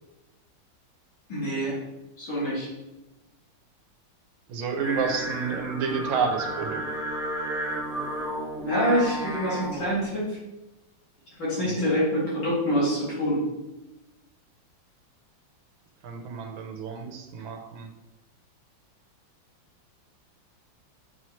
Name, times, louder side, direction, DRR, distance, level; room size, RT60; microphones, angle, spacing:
voice 1, 1.3-1.8 2.2-2.7 8.6-10.4 11.4-13.4, equal, 75° left, -8 dB, 2.8 m, -26 dB
voice 2, 4.5-6.8 11.7-11.9 16.0-17.9, right 5 dB, 80° right, 4 dB, 1.5 m, -30 dB
Singing, 4.8-10.0, right 1 dB, 5° right, 0.4 m, -32 dB
7.1 x 4.4 x 3.1 m, 1.0 s
omnidirectional pair, 2.1 m